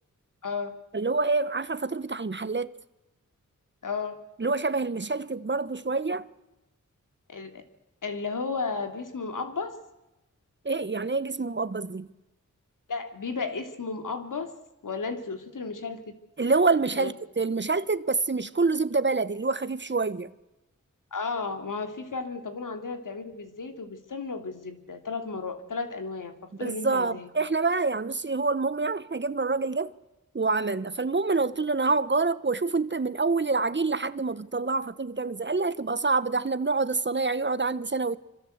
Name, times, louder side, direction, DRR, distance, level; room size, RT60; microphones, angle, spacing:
voice 1, 0.4-0.8 3.8-4.2 7.3-7.6 8.0-9.8 12.9-14.5 14.8-16.2 16.9-17.1 21.1-26.3 26.6-27.3, left 4 dB, 80° left, 2.8 m, -33 dB
voice 2, 0.9-2.7 4.4-6.3 10.6-12.1 16.4-20.3 26.6-29.9 30.3-38.2, right 3 dB, 35° right, 1.1 m, -27 dB
25.5 x 25.5 x 8.0 m
wide cardioid pair, 65°, 31 cm